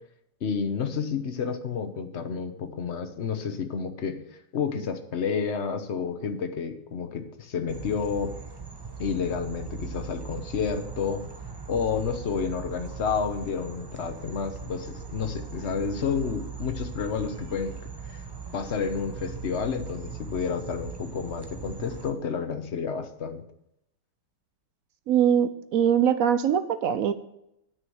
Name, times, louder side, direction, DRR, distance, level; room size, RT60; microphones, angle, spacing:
voice 1, 0.4-4.2 4.5-8.3 9.0-11.2 11.7-17.7 18.0-18.2 18.5-23.4, left 6 dB, 45° left, 8 dB, 0.9 m, -30 dB
sound 1, 7.7-22.1, right 6 dB, 30° right, 0.4 m, -39 dB
voice 2, 25.1-27.1, right 8 dB, 75° right, 11 dB, 0.7 m, -22 dB
9.6 x 6.3 x 7.8 m, 0.81 s
omnidirectional pair, 2.1 m